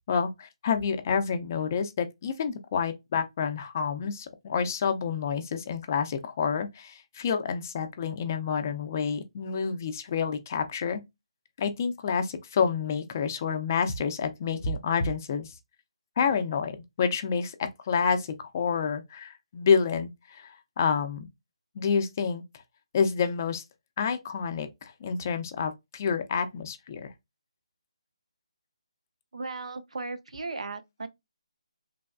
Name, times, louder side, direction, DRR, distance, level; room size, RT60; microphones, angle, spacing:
voice 1, 0.1-11.0 11.6-15.5 16.2-21.3 21.8-22.4 22.9-23.6 24.0-27.1, left 6 dB, 30° left, 0.4 m, -28 dB
voice 2, 29.3-31.1, right 3 dB, 80° right, 0.5 m, -36 dB
3.2 x 2.2 x 2.4 m
hypercardioid pair, 165°, 3 cm